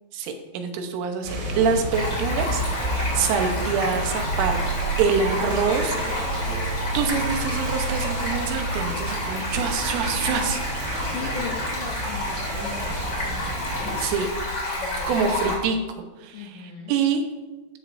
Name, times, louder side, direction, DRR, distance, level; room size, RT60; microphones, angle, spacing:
voice 1, 0.1-4.6 5.0-6.5 6.9-10.6 14.0-14.3 15.1-15.8 16.2-17.2, right 6 dB, 85° right, 5 dB, 3.6 m, -26 dB
sound 1, 1.2-14.0, right 2 dB, 65° right, 4.8 m, -30 dB
Stream, 1.9-15.5, left 1 dB, 25° left, 3.4 m, -30 dB
voice 2, 11.0-14.4 14.7-15.1 16.3-16.9, left 4 dB, 85° left, -1 dB, 1.8 m, -39 dB
13.0 x 12.5 x 2.7 m, 1.2 s
omnidirectional pair, 5.5 m